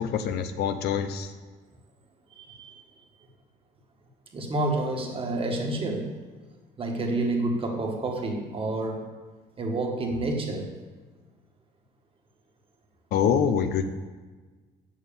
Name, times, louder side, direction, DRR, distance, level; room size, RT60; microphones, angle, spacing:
voice 1, 0.0-1.3 13.1-13.8, left 7 dB, 75° left, 9 dB, 0.6 m, -25 dB
voice 2, 2.4-2.8 4.3-6.1 6.8-9.1 9.6-10.7, right 2 dB, 30° right, 2 dB, 1.6 m, -29 dB
7.3 x 6.5 x 7.0 m, 1.4 s
cardioid pair, 110°, 17 cm